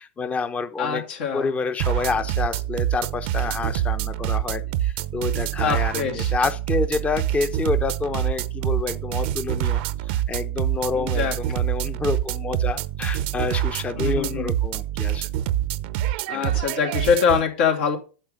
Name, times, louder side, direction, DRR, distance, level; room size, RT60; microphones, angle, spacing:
voice 1, 0.0-1.0 1.3-15.2 16.3-16.6, left 4 dB, 20° left, 8 dB, 0.9 m, -28 dB
voice 2, 0.8-1.5 5.6-6.3 10.9-11.4 14.0-14.6 16.3-18.0, left 7 dB, 75° left, 1 dB, 3.3 m, -24 dB
sound 1, 1.8-17.4, right 12 dB, 65° right, 0.7 m, -26 dB
8.8 x 7.2 x 5.4 m, 0.34 s
hypercardioid pair, 105°, 6 cm